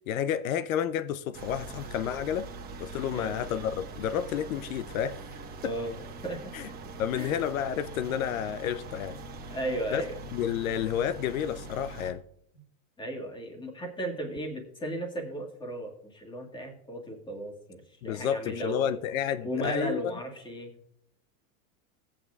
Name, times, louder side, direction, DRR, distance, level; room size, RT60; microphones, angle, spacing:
voice 1, 0.1-2.5 2.8-5.2 5.6-5.7 6.5-6.7 7.0-9.2 9.9-10.0 10.3-12.2 18.0-20.0, left 9 dB, 80° left, 0.6 m, -30 dB
sound 1, 1.3-12.1, right 3 dB, 20° right, 1.3 m, -42 dB
voice 2, 5.6-6.5 7.1-7.3 9.5-10.2 13.0-18.8 19.4-20.7, right 1 dB, 10° left, 1.8 m, -35 dB
16.0 x 8.7 x 2.3 m
supercardioid pair, 140°, 41 cm